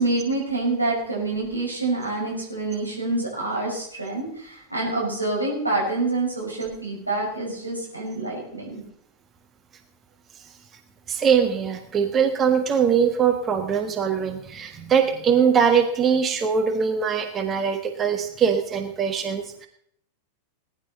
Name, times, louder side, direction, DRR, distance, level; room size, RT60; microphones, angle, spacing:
voice 1, 0.0-8.8, right 2 dB, 85° right, -3 dB, 5.5 m, -27 dB
voice 2, 11.1-19.7, right 7 dB, 25° right, 6 dB, 1.5 m, -22 dB
19.0 x 11.0 x 4.1 m, 0.68 s
figure-of-eight pair, 90°, 0 cm